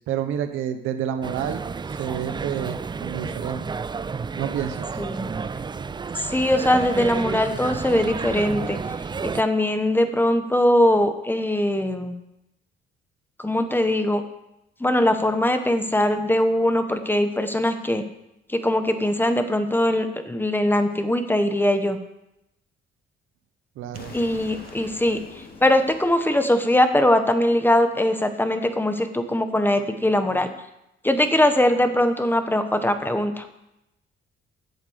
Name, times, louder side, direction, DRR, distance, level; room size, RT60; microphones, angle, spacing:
voice 1, 0.0-1.6 1.9-3.6 4.4-5.0 23.8-24.2 24.7-24.8, right 9 dB, 90° right, 9 dB, 0.9 m, -29 dB
sound 1, 1.2-9.4, right 5 dB, 20° right, 0.4 m, -31 dB
voice 2, 5.0-5.3 6.2-8.8 9.2-12.1 13.4-14.2 14.8-18.0 18.5-22.0 24.1-25.2 25.6-30.5 31.0-33.5, left 1 dB, 10° left, 8 dB, 1.2 m, -21 dB
Explosion, 23.9-26.8, left 4 dB, 50° left, 2.4 m, -43 dB
9.4 x 7.4 x 8.0 m, 0.89 s
cardioid pair, 90°, 20 cm